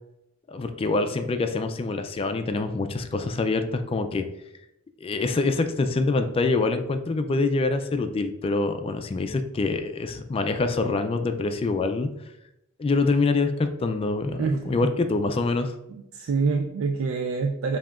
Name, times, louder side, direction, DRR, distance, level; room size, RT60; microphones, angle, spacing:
voice 1, 0.5-4.3 5.0-12.1 12.8-15.7, left 3 dB, 30° left, 7 dB, 0.3 m, -25 dB
voice 2, 14.3-14.7 15.9-17.8, right 4 dB, 75° right, 4 dB, 0.3 m, -26 dB
7.1 x 2.8 x 2.4 m, 0.87 s
head